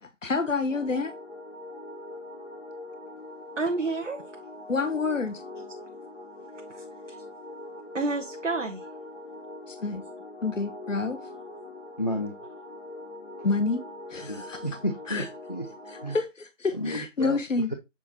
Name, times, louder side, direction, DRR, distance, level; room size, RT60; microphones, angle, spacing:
voice 1, 0.2-1.1 4.7-5.4 9.7-10.0 10.4-11.2 13.4-13.8 14.1-14.6 15.1-15.2 15.9-17.7, left 4 dB, 85° left, 0.9 m, -28 dB
sound 1, 0.7-16.2, left 1 dB, 60° left, 1.4 m, -43 dB
voice 2, 3.6-4.2 6.7-7.2 7.9-8.8, right 3 dB, 75° right, 1.0 m, -30 dB
voice 3, 12.0-12.3 14.2-15.7 16.0-16.2 16.7-17.4, equal, 35° left, 0.6 m, -32 dB
7.1 x 4.8 x 2.8 m
figure-of-eight pair, 165°, 37 cm